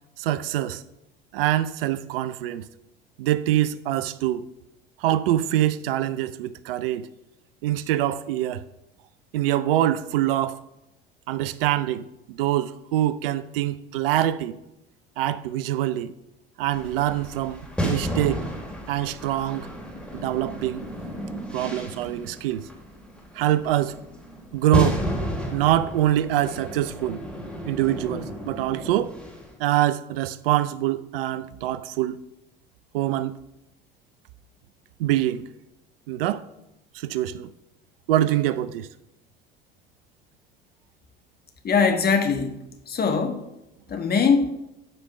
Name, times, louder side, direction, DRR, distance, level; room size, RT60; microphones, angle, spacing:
voice 1, 0.2-0.8 1.3-2.6 3.2-4.4 5.0-7.1 7.6-8.6 9.3-10.6 11.3-14.6 15.2-16.1 16.6-18.4 18.9-19.7 20.1-20.8 21.5-22.6 23.4-24.0 24.5-25.0 25.5-27.2 27.7-29.1 29.6-32.2 32.9-33.3 35.0-35.4 36.1-36.5 36.9-37.5 38.1-38.9, right 13 dB, 70° right, 0.6 m, -24 dB
sound 1, 16.7-29.5, equal, 5° left, 3.2 m, -32 dB
voice 2, 41.6-43.5 43.9-44.5, left 5 dB, 35° left, 1.4 m, -22 dB
12.5 x 5.1 x 5.3 m
hypercardioid pair, 70°, 29 cm